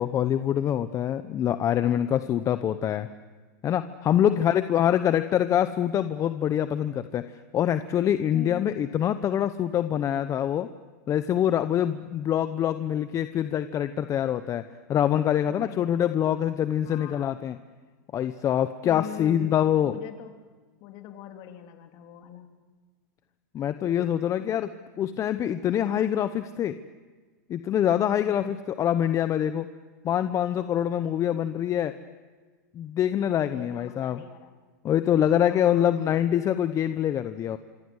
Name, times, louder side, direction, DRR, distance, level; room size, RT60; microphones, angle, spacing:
voice 1, 0.0-3.1 3.6-10.7 11.1-14.6 14.9-17.6 18.1-19.9 23.5-24.7 25.0-26.8 27.5-29.7 30.0-31.9 32.7-34.2 34.8-37.6, left 10 dB, 30° left, 11 dB, 0.9 m, -25 dB
voice 2, 4.1-4.5 4.9-5.1 8.3-8.6 15.5-15.9 16.8-17.3 18.8-19.5 19.8-20.3 20.8-22.5 24.4-24.6 27.9-28.5 33.3-34.5 35.5-36.1, left 10 dB, 50° left, 5 dB, 3.3 m, -42 dB
27.5 x 24.5 x 8.1 m, 1.4 s
hypercardioid pair, 115°, 10 cm